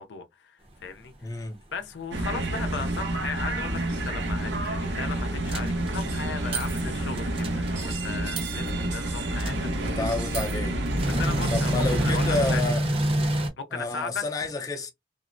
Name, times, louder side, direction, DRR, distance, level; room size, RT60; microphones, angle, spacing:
voice 1, 0.0-1.4 1.7-10.0 11.1-12.6 13.6-14.4, left 5 dB, 80° left, 0.5 m, -37 dB
voice 2, 1.2-1.6 9.8-10.8 11.5-12.9 13.7-14.9, left 3 dB, 20° left, 0.5 m, -30 dB
sound 1, 2.1-12.6, right 1 dB, 85° right, 0.8 m, -29 dB
sound 2, 5.5-6.1 6.5-6.8 7.2-8.0 8.4-8.7 9.0-9.1 9.4-10.6 10.9-13.5, right 1 dB, 30° right, 0.6 m, -27 dB
3.6 x 2.0 x 2.5 m
head